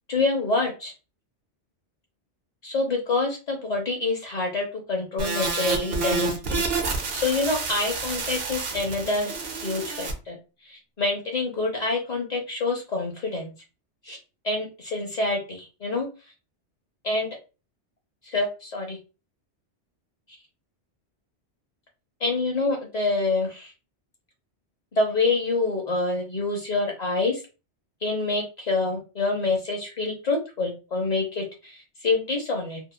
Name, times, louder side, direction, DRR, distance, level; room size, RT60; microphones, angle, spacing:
voice 1, 0.1-0.9 2.6-10.4 10.6-13.5 14.0-14.2 14.4-16.1 17.0-17.3 18.2-19.0 22.2-23.7 24.9-27.4 28.0-32.8, left 3 dB, 45° left, 1 dB, 0.6 m, -27 dB
sound 1, 5.2-10.1, right 4 dB, 65° right, 0.8 m, -29 dB
2.8 x 2.3 x 2.2 m, 0.31 s
omnidirectional pair, 1.2 m